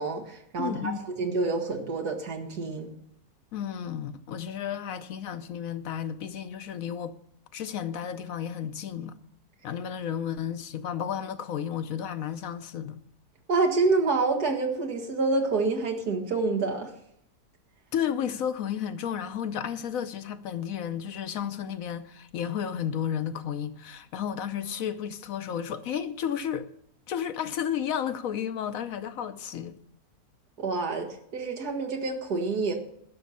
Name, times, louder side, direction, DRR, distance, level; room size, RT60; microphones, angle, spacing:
voice 1, 0.0-2.9 13.5-16.9 30.6-32.7, right 3 dB, 90° right, 2.2 m, -27 dB
voice 2, 0.6-1.0 3.5-7.1 7.5-9.2 9.6-13.0 17.9-26.7 27.1-29.8, left 9 dB, 65° left, 1.1 m, -32 dB
11.5 x 6.3 x 8.4 m
omnidirectional pair, 1.6 m